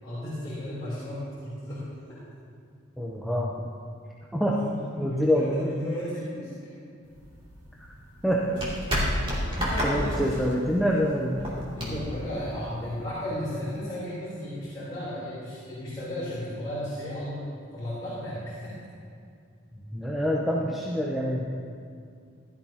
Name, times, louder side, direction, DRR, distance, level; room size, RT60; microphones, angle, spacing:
voice 1, 0.0-1.8 4.5-6.5 9.6-10.2 11.8-18.8, equal, 25° left, -13 dB, 3.4 m, -34 dB
voice 2, 3.0-3.5 4.3-4.6 5.0-5.7 8.2-8.5 9.6-11.5 19.9-21.7, equal, ahead, -4 dB, 0.7 m, -26 dB
sound 1, 7.1-13.0, equal, 25° right, 2.7 m, -31 dB
16.0 x 12.5 x 2.9 m, 2.3 s
head